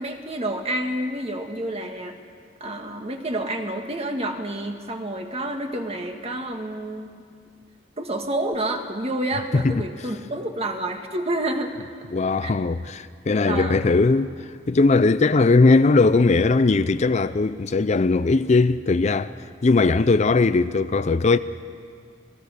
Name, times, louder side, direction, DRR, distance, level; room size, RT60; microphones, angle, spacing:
voice 1, 0.0-2.2 2.6-7.1 8.0-11.8 12.4-12.5 13.5-13.8, right 1 dB, 35° right, 1.8 m, -29 dB
voice 2, 12.1-14.3 14.7-19.3 19.6-21.4, left 3 dB, 40° left, 0.5 m, -19 dB
28.5 x 19.0 x 6.6 m
head